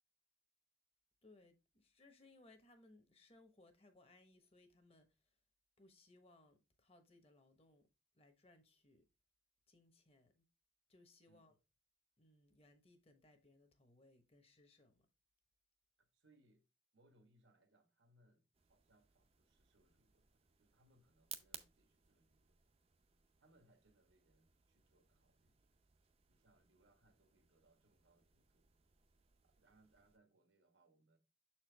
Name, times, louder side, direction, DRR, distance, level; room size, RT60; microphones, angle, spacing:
voice 1, 1.2-5.3 5.8-7.9 8.1-9.0 9.7-10.4 10.9-11.6 12.2-15.0, left 2 dB, 30° left, 1.0 m, -67 dB
voice 2, 16.0-16.6 16.9-22.7 23.4-25.6 26.3-28.7 29.4-31.2, right 1 dB, 90° right, 1.3 m, -74 dB
sound 1, 18.5-30.2, right 9 dB, 30° right, 0.5 m, -61 dB
6.8 x 4.4 x 3.3 m
head